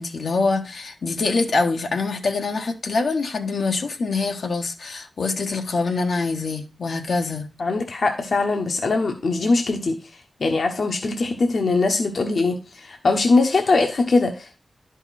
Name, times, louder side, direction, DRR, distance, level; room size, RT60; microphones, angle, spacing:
voice 1, 0.0-7.5, left 3 dB, 85° left, 1.3 m, -24 dB
voice 2, 7.6-10.0 10.4-14.6, left 3 dB, 70° left, 1.2 m, -21 dB
11.0 x 5.4 x 4.2 m
wide cardioid pair, 105°, 0 cm